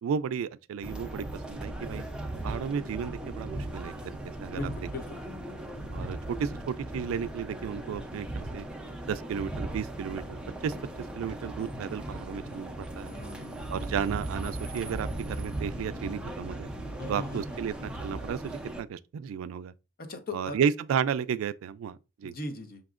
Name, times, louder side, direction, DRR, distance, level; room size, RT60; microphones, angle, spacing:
voice 1, 0.0-2.0 2.4-3.9 4.2-4.7 5.9-8.7 9.0-10.7 11.2-13.1 13.7-16.7 17.1-19.7 20.3-22.3, right 7 dB, 85° right, 0.3 m, -33 dB
sound 1, 0.8-18.8, right 1 dB, 5° right, 0.4 m, -38 dB
voice 2, 4.5-5.2 13.0-13.7 17.0-17.6 20.1-20.6 22.2-22.8, left 2 dB, 50° left, 0.7 m, -39 dB
5.9 x 2.7 x 2.4 m
head